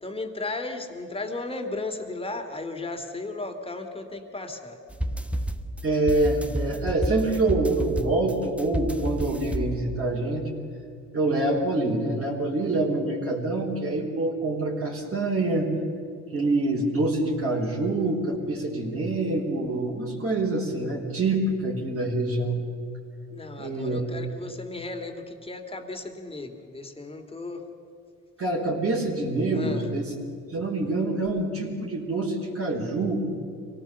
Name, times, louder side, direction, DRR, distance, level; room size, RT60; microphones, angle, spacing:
voice 1, 0.0-4.8 23.3-27.6 29.5-29.9, left 2 dB, 20° left, 5 dB, 2.6 m, -35 dB
sound 1, 4.9-10.2, right 1 dB, 5° right, 1.1 m, -31 dB
voice 2, 5.8-10.4 11.1-15.7 16.3-22.6 23.6-24.0 28.4-30.1 30.5-33.2, right 2 dB, 50° right, -3 dB, 4.2 m, -26 dB
24.5 x 18.0 x 7.0 m, 2.5 s
cardioid pair, 90°, 30 cm